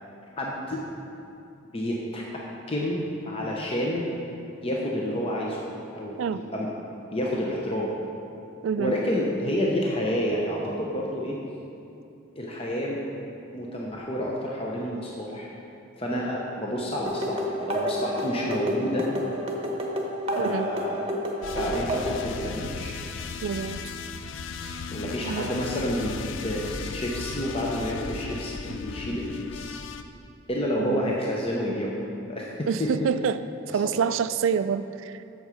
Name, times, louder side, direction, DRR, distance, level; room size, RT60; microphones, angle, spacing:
voice 1, 0.4-0.8 1.7-2.4 2.7-3.0 3.2-4.1 4.6-5.6 5.9-6.7 7.1-7.9 8.8-11.4 12.4-13.0 13.5-15.5 16.0-19.1 20.3-21.0 21.6-23.0 24.9-29.8 30.5-31.9 32.3-32.9, equal, 30° left, -3 dB, 0.7 m, -29 dB
voice 2, 8.6-9.0 20.4-20.7 23.4-23.8 24.6-24.7 25.3-25.5 30.8-31.2 32.7-33.4 33.7-35.4, right 6 dB, 75° right, 13 dB, 0.3 m, -27 dB
sound 1, 17.1-22.2, equal, 30° right, 0.9 m, -30 dB
sound 2, 21.4-30.0, left 5 dB, 70° left, 0.4 m, -36 dB
7.9 x 6.7 x 5.0 m, 2.7 s
head